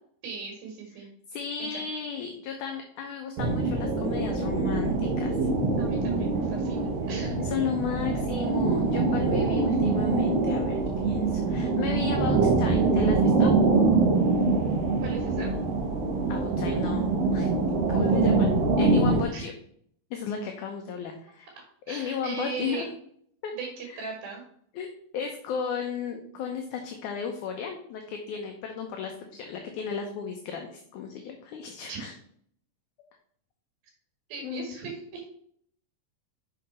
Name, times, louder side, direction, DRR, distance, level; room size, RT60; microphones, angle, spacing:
voice 1, 0.2-1.1 1.6-1.9 5.8-7.4 15.0-15.5 19.3-19.5 21.9-22.9 23.5-24.4 31.9-32.0 34.3-35.3, right 5 dB, 85° right, 0 dB, 3.5 m, -38 dB
voice 2, 1.0-5.4 7.0-7.1 7.4-13.5 16.3-17.5 17.9-18.5 18.8-19.5 20.1-21.5 21.9-22.9 23.4-23.5 23.9-24.1 24.8-32.1 34.4-34.7, left 6 dB, 75° left, 3 dB, 1.9 m, -34 dB
sound 1, 3.4-19.2, right 3 dB, 65° right, 1.6 m, -24 dB
6.7 x 5.7 x 4.2 m, 0.64 s
omnidirectional pair, 4.2 m